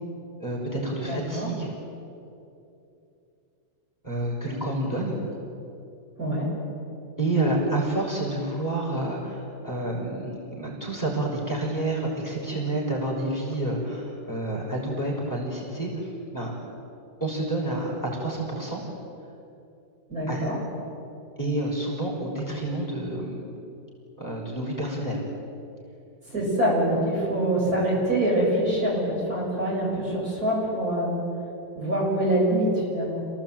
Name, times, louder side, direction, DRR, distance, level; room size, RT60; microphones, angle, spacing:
voice 1, 0.4-1.7 4.0-5.2 7.2-10.3 10.5-16.5 17.2-18.8 20.3-20.5 21.4-23.3 24.2-25.2, right 2 dB, 10° left, -4 dB, 5.8 m, -29 dB
voice 2, 1.0-1.5 6.2-6.5 20.1-20.6 26.3-31.1 31.7-33.2, right 1 dB, 50° right, -4 dB, 7.9 m, -25 dB
28.0 x 18.0 x 9.1 m, 2.8 s
omnidirectional pair, 2.0 m